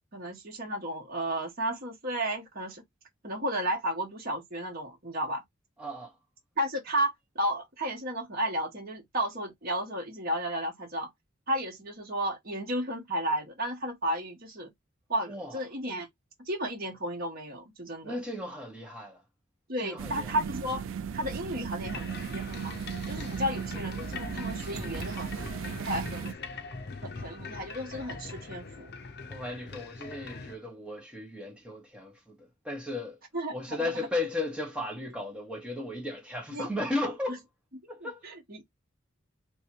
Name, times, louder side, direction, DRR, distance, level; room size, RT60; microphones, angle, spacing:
voice 1, 0.1-2.8 3.2-5.4 6.6-11.1 11.5-14.7 15.1-16.1 16.4-18.2 19.7-20.8 21.1-22.7 23.1-25.3 25.6-26.3 27.0-28.9 33.3-33.8 36.5-36.7 38.0-38.6, right 1 dB, 50° right, 1.3 m, -33 dB
voice 2, 5.8-6.1 15.3-15.6 18.0-19.2 19.8-20.3 29.3-32.4 32.6-33.2 33.5-37.4 37.9-38.2, left 2 dB, 5° right, 1.4 m, -35 dB
sound 1, 20.0-26.3, right 6 dB, 80° right, 0.4 m, -36 dB
sound 2, 21.8-30.6, left 4 dB, 55° left, 0.7 m, -42 dB
3.2 x 3.1 x 3.0 m
head